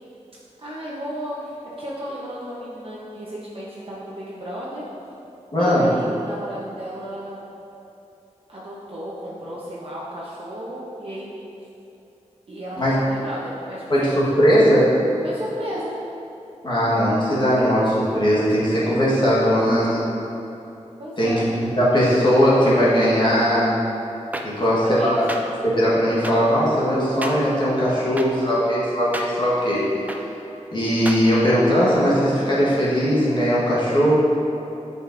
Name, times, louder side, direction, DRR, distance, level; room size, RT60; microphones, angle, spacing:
voice 1, 0.6-4.8 5.6-7.5 8.5-11.3 12.5-14.2 15.2-15.9 21.0-21.4 24.5-25.2, equal, 50° right, -7 dB, 0.8 m, -34 dB
voice 2, 5.5-5.9 12.8-12.9 13.9-14.9 16.6-20.0 21.2-23.8 24.4-25.2 25.6-29.9 30.7-34.1, equal, 40° left, -9 dB, 1.3 m, -19 dB
sound 1, 24.3-24.4 25.3-25.4 26.2-26.3 27.2-27.3 28.2-28.3 29.1-29.3 30.1-30.2 31.0-31.2, right 1 dB, 15° right, 0.4 m, -29 dB
8.5 x 5.2 x 2.5 m, 2.8 s
wide cardioid pair, 115°, 12 cm